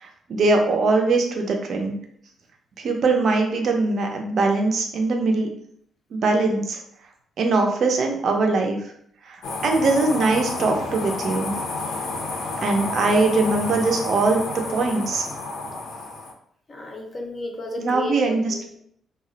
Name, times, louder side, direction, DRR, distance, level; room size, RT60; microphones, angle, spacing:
voice 1, 0.0-2.0 2.8-5.5 6.1-6.8 7.4-8.8 9.2-11.5 12.6-14.4 14.7-15.2 17.8-18.5, right 3 dB, 50° right, 3 dB, 0.5 m, -21 dB
sound 1, 9.4-16.3, left 3 dB, 85° left, 0.6 m, -30 dB
voice 2, 13.1-13.4 16.7-18.8, left 2 dB, 25° left, 2 dB, 0.4 m, -33 dB
2.3 x 2.1 x 3.7 m, 0.68 s
cardioid pair, 165°, 0 cm